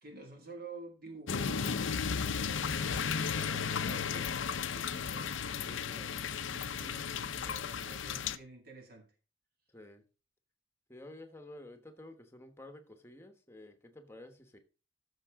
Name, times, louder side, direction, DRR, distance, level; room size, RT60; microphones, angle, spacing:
voice 1, 0.0-5.3 5.9-6.1 6.5-9.1, right 2 dB, 45° right, 2.2 m, -50 dB
sound 1, 1.3-8.4, left 6 dB, 70° left, 0.6 m, -34 dB
voice 2, 5.6-6.1 9.7-10.0 10.9-14.6, left 1 dB, 10° left, 1.2 m, -51 dB
14.5 x 6.7 x 3.7 m
head